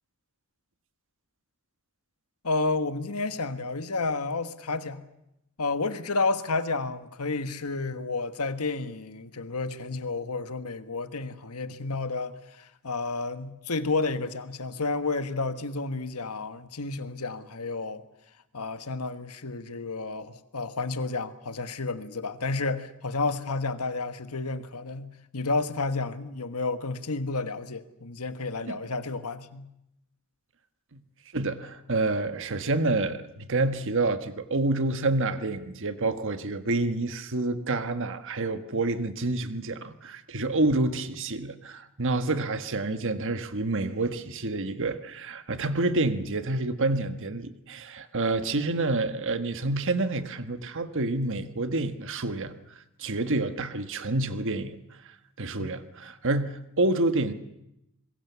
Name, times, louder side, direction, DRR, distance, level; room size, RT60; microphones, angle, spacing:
voice 1, 2.4-5.0 5.6-18.0 18.5-29.7 55.6-55.7, left 3 dB, 80° left, 1.5 m, -31 dB
voice 2, 31.3-52.5 53.0-54.8 55.0-57.3, right 2 dB, 60° right, 1.5 m, -28 dB
26.0 x 21.5 x 7.0 m
head